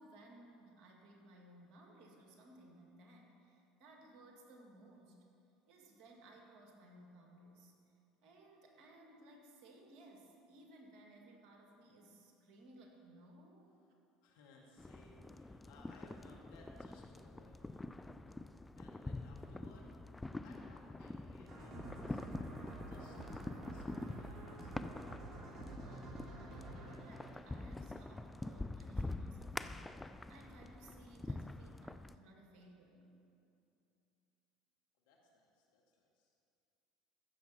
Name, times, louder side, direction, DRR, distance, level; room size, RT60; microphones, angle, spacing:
voice 1, 0.0-5.3 5.7-7.7 8.2-13.7 25.8-26.5 27.0-30.0 30.3-33.2, right 1 dB, 55° right, 1 dB, 1.9 m, -60 dB
voice 2, 14.2-18.1 18.8-19.9 20.4-25.1 35.0-36.3, left 2 dB, 70° left, -1 dB, 1.8 m, -64 dB
sound 1, 14.8-32.2, left 2 dB, 10° left, 0.3 m, -46 dB
sound 2, 21.5-28.2, right 1 dB, 30° right, 2.7 m, -50 dB
14.5 x 6.9 x 4.2 m, 2.7 s
hypercardioid pair, 75°, 0 cm